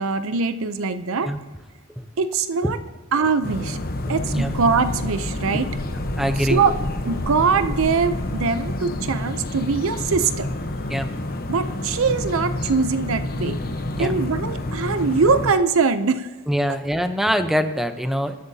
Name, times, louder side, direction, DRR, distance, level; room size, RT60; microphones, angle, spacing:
voice 1, 0.0-1.3 2.2-2.8 3.1-3.8 4.1-5.7 6.4-6.8 7.0-10.5 11.5-13.6 14.0-16.3 16.7-16.8, right 5 dB, 65° right, 10 dB, 0.6 m, -22 dB
sound 1, 3.4-15.5, left 1 dB, 45° left, 1.0 m, -29 dB
sound 2, 4.1-9.1, left 1 dB, 65° left, 1.2 m, -34 dB
voice 2, 6.2-6.6 10.9-11.1 13.9-14.1 16.5-18.4, equal, ahead, 7 dB, 0.8 m, -23 dB
24.5 x 11.0 x 2.8 m, 1.2 s
head